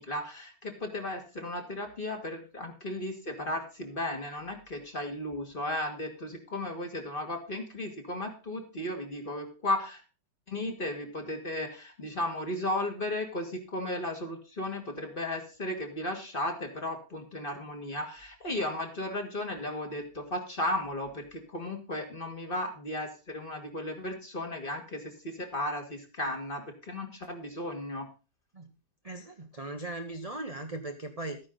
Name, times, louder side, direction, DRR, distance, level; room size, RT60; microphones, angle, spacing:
voice 1, 0.0-10.0 10.5-28.1, left 1 dB, 30° left, 3 dB, 2.6 m, -35 dB
voice 2, 29.0-31.4, right 2 dB, 25° right, 5 dB, 1.0 m, -38 dB
13.5 x 9.7 x 3.9 m, 0.33 s
omnidirectional pair, 1.9 m